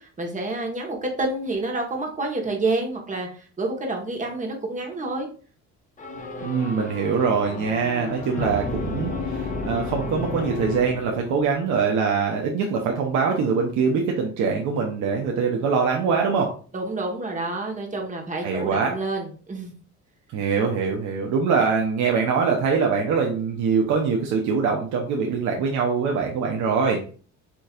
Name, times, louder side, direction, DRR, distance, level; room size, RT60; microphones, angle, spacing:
voice 1, 0.0-5.3 16.7-19.8, right 2 dB, 25° right, 2 dB, 1.4 m, -28 dB
sound 1, 6.0-11.6, left 3 dB, 25° left, 1.1 m, -32 dB
voice 2, 6.4-16.5 18.4-18.9 20.3-27.0, right 5 dB, 70° right, 1 dB, 0.9 m, -23 dB
6.9 x 3.1 x 2.5 m, 0.41 s
cardioid pair, 120°, 30 cm